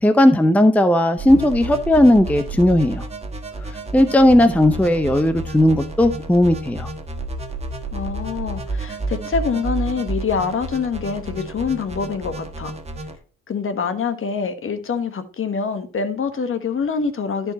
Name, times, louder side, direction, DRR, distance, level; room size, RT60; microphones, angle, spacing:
voice 1, 0.0-3.0 3.9-6.9, left 1 dB, 5° left, 0.6 m, -16 dB
sound 1, 1.2-13.2, right 2 dB, 20° right, 1.5 m, -31 dB
voice 2, 7.9-12.8 13.5-17.5, left 5 dB, 45° left, 1.3 m, -25 dB
12.5 x 4.6 x 4.1 m
cardioid pair, 90°, 30 cm